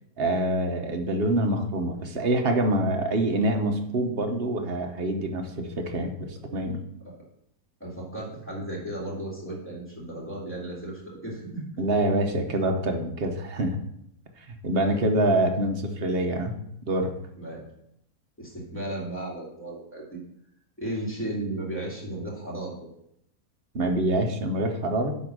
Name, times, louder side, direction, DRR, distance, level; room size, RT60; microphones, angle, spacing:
voice 1, 0.2-6.8 11.8-13.8 14.5-16.6 16.9-17.1 23.7-25.2, right 1 dB, 45° right, 4 dB, 1.1 m, -26 dB
voice 2, 7.8-11.7 13.5-13.7 14.8-15.0 17.4-17.6 18.4-20.2 20.8-22.9, right 1 dB, 5° left, -4 dB, 2.5 m, -35 dB
9.6 x 3.8 x 6.2 m, 0.75 s
omnidirectional pair, 1.7 m